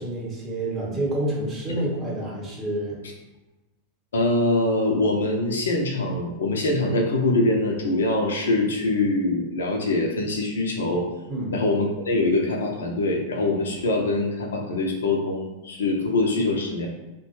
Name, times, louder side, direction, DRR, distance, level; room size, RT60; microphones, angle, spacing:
voice 1, 0.0-3.0 11.3-11.5, right 1 dB, 25° right, -3 dB, 0.9 m, -28 dB
voice 2, 4.1-11.0 11.5-16.9, left 2 dB, 65° left, 1 dB, 0.5 m, -23 dB
2.6 x 2.1 x 3.0 m, 1.0 s
figure-of-eight pair, 90°, 0 cm